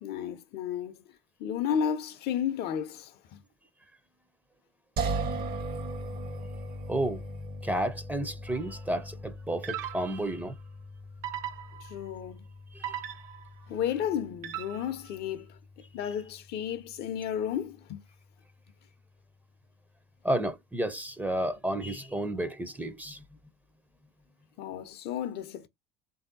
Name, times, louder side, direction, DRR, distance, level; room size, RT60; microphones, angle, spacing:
voice 1, 0.0-1.0 1.4-3.4 11.8-12.4 13.7-15.6 15.9-18.0 24.6-25.7, left 8 dB, 55° left, 0.6 m, -33 dB
sound 1, 5.0-18.0, right 2 dB, 50° right, 1.0 m, -40 dB
voice 2, 6.9-7.2 7.6-10.5 12.7-13.0 20.2-23.2, right 1 dB, 10° right, 0.6 m, -31 dB
sound 2, 8.5-8.8 9.6-10.4 11.2-12.1 12.8-13.6 14.4-15.1, right 11 dB, 65° right, 0.7 m, -39 dB
3.4 x 2.7 x 2.5 m
hypercardioid pair, 65°, 20 cm